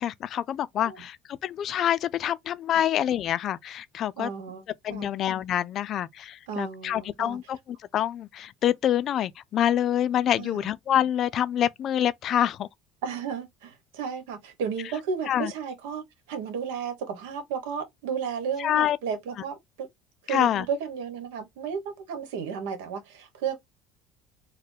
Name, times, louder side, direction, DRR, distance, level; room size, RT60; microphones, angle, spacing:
voice 1, 0.0-4.3 4.8-12.7 15.3-15.5 18.6-19.0 20.3-20.7, left 10 dB, 50° left, 0.3 m, -26 dB
voice 2, 4.2-4.6 4.9-5.1 6.5-7.4 10.4-10.7 13.0-19.9 20.2-23.6, right 6 dB, 85° right, 1.1 m, -33 dB
4.2 x 2.1 x 3.2 m
supercardioid pair, 95°, 0 cm